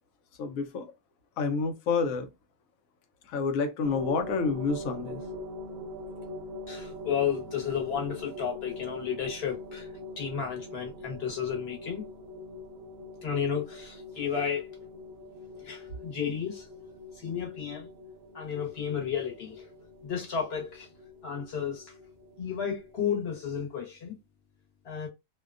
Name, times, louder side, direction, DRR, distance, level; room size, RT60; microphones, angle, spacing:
voice 1, 0.4-0.9 1.4-2.3 3.3-5.2, left 5 dB, 90° left, 1.0 m, -29 dB
sound 1, 3.8-23.6, left 2 dB, 85° right, 1.0 m, -43 dB
voice 2, 6.7-9.9 10.2-12.0 13.2-14.7 15.6-16.7 17.2-17.9 18.3-19.6 20.0-20.9 21.2-21.9 22.4-24.1 24.8-25.1, left 7 dB, 50° left, 1.2 m, -32 dB
2.7 x 2.2 x 2.4 m
omnidirectional pair, 1.4 m